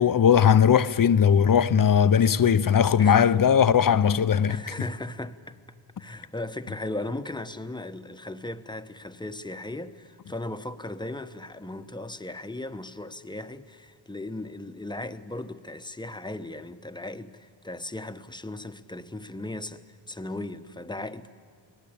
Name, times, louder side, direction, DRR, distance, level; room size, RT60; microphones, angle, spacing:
voice 1, 0.0-4.9, left 8 dB, 45° left, 0.8 m, -19 dB
voice 2, 4.5-5.6 6.0-21.3, left 2 dB, 10° left, 1.1 m, -37 dB
29.0 x 19.5 x 8.7 m
cardioid pair, 75°, 46 cm